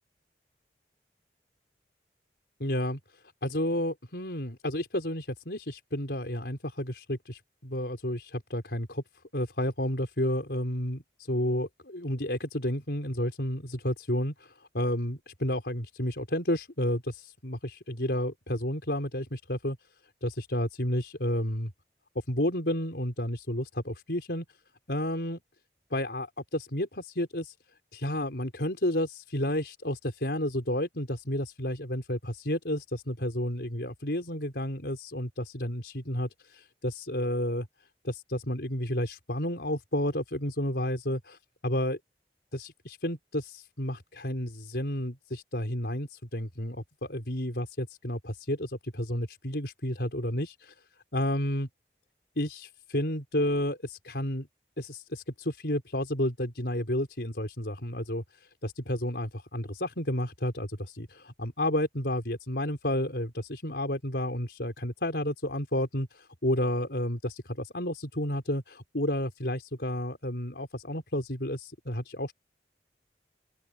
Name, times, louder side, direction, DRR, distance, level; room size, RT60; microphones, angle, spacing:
voice 1, 2.6-3.0 3.4-9.0 9.3-19.8 20.2-21.7 22.3-24.4 24.9-25.4 25.9-27.5 27.9-37.7 38.0-42.0 42.5-50.7 51.1-51.7 52.4-54.5 54.8-58.2 58.6-72.3, left 1 dB, 70° left, 4.5 m, -31 dB
open air
head